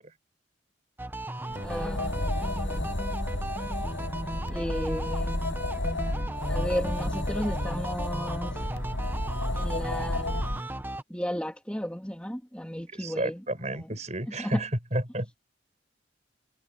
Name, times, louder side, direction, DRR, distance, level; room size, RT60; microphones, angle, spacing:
sound 1, 1.0-11.0, right 1 dB, 10° right, 0.9 m, -36 dB
sound 2, 1.5-10.6, left 1 dB, 85° left, 4.9 m, -32 dB
voice 1, 1.6-2.9 4.5-5.4 6.5-8.6 9.5-10.5 11.1-13.4 13.7-13.9 14.4-14.6, equal, 5° left, 2.9 m, -34 dB
voice 2, 12.9-15.4, right 1 dB, 35° right, 5.6 m, -31 dB
head